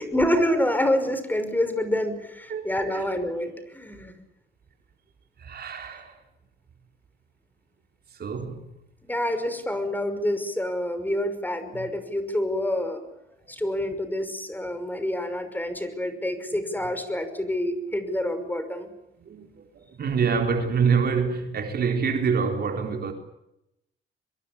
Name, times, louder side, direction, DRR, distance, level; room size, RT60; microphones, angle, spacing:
voice 1, 0.0-4.1 9.1-13.0 13.5-18.9, left 1 dB, 10° left, 5.8 m, -27 dB
voice 2, 2.5-3.0 5.4-6.1 8.2-8.6 16.5-16.6 19.3-19.7 20.0-23.1, right 6 dB, 50° right, 4.1 m, -26 dB
25.0 x 22.0 x 8.7 m
cardioid pair, 90°, 20 cm